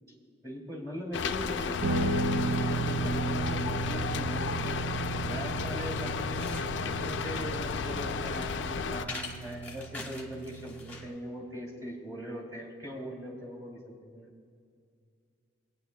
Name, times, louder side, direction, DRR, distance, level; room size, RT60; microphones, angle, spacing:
voice 1, 0.4-4.7 5.2-14.3, equal, 15° right, -3 dB, 2.3 m, -41 dB
Rain, 1.1-9.0, left 5 dB, 65° left, 0.4 m, -33 dB
Guitar, 1.8-11.1, right 3 dB, 65° right, 0.6 m, -34 dB
sound 1, 6.3-11.2, left 3 dB, 10° left, 1.0 m, -45 dB
24.5 x 9.3 x 2.3 m, 2.2 s
head